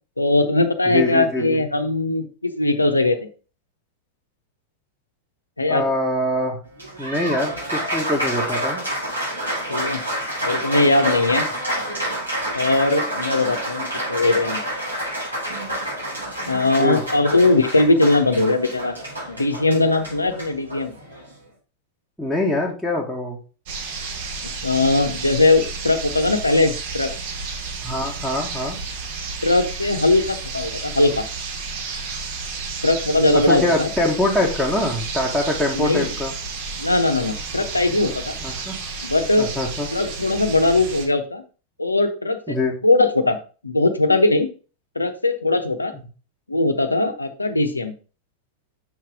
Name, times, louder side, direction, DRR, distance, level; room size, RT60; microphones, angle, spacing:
voice 1, 0.2-3.3 5.6-5.8 9.7-10.0 10.4-11.5 12.5-14.6 16.5-18.9 19.3-20.9 24.4-27.1 29.4-31.2 32.8-33.9 35.7-36.1 36.8-38.4 39.0-39.5 39.9-41.4 41.8-42.6 42.8-43.4 43.6-44.5 44.9-45.9 46.5-47.9, left 2 dB, 80° left, 6 dB, 0.9 m, -20 dB
voice 2, 0.9-1.6 5.7-6.6 7.0-8.8 16.8-17.0 22.2-23.4 27.8-28.8 33.3-36.3 38.4-38.7 39.4-39.9 42.5-42.7, left 1 dB, ahead, -4 dB, 1.5 m, -23 dB
Applause, 6.6-21.3, right 1 dB, 85° right, 4.6 m, -28 dB
sound 1, 23.7-41.1, right 4 dB, 50° right, 1.7 m, -32 dB
7.7 x 5.7 x 3.6 m, 0.35 s
figure-of-eight pair, 90°, 0 cm